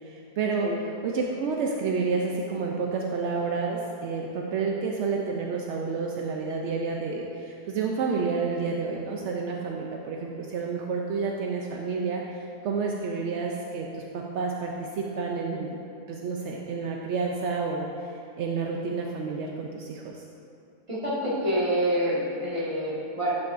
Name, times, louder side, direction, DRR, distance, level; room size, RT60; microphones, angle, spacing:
voice 1, 0.0-0.7 1.0-15.7 16.1-18.1 18.4-20.3, right 4 dB, 70° right, 0 dB, 0.6 m, -30 dB
voice 2, 20.9-23.4, equal, 20° right, -7 dB, 1.5 m, -27 dB
11.0 x 6.0 x 2.5 m, 2.7 s
omnidirectional pair, 1.7 m